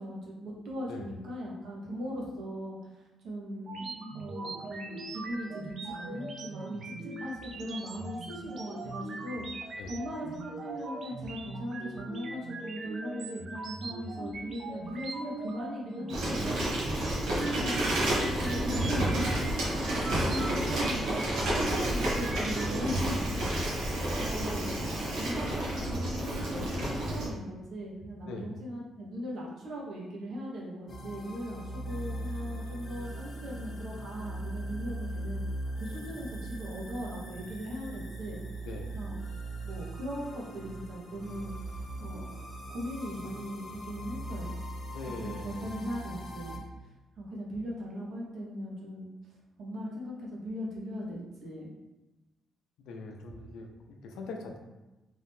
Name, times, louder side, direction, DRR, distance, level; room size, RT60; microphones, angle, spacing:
voice 1, 0.0-16.4 17.4-19.4 19.7-35.4 35.8-38.4 38.9-39.1 39.6-41.5 42.0-42.4 42.7-44.6 45.0-46.6 47.2-49.1 49.6-51.7, equal, 70° right, -3 dB, 1.2 m, -38 dB
sound 1, 3.6-22.8, right 2 dB, 55° right, 0.5 m, -41 dB
Bicycle, 16.1-27.3, right 1 dB, 90° right, 1.2 m, -30 dB
sound 2, 30.9-46.6, right 1 dB, 40° left, 0.9 m, -40 dB
voice 2, 44.9-45.7 52.8-54.6, left 3 dB, 85° left, 3 dB, 0.5 m, -42 dB
3.6 x 2.7 x 3.6 m, 1.0 s
cardioid pair, 90°, 0 cm